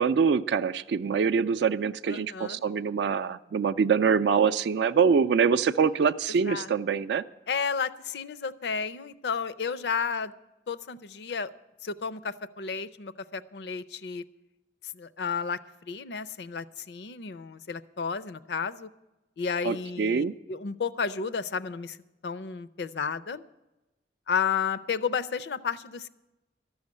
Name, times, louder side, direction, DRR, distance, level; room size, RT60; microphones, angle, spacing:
voice 1, 0.0-7.2 19.6-20.3, right 6 dB, 70° right, 12 dB, 0.3 m, -24 dB
voice 2, 2.1-2.6 6.3-6.7 7.5-10.3 10.7-11.5 11.8-14.2 14.9-15.6 15.9-18.9 19.4-22.0 22.2-23.5 24.3-26.1, left 6 dB, 65° left, 15 dB, 0.5 m, -32 dB
13.5 x 6.4 x 9.6 m, 1.0 s
head